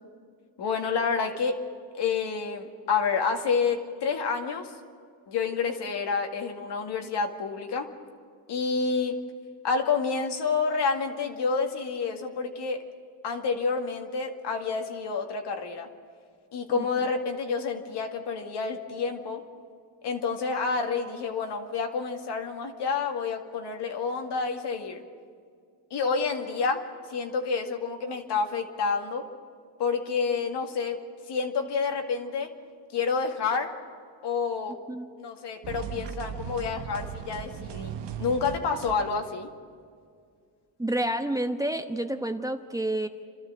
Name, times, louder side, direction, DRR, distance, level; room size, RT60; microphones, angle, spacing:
voice 1, 0.6-1.6 1.9-4.7 5.3-7.9 8.5-9.2 9.6-12.8 13.2-15.9 16.5-19.4 20.0-25.0 25.9-26.8 27.1-29.3 29.8-31.0 31.3-32.5 32.9-33.7 34.2-34.8 35.2-37.9 38.2-39.5, left 5 dB, 70° left, 3 dB, 2.3 m, -29 dB
sound 1, 35.6-39.4, right 8 dB, 70° right, 1.1 m, -38 dB
voice 2, 40.8-43.1, right 1 dB, 10° right, 6 dB, 1.1 m, -29 dB
29.0 x 13.0 x 7.6 m, 2.2 s
cardioid pair, 80°, 43 cm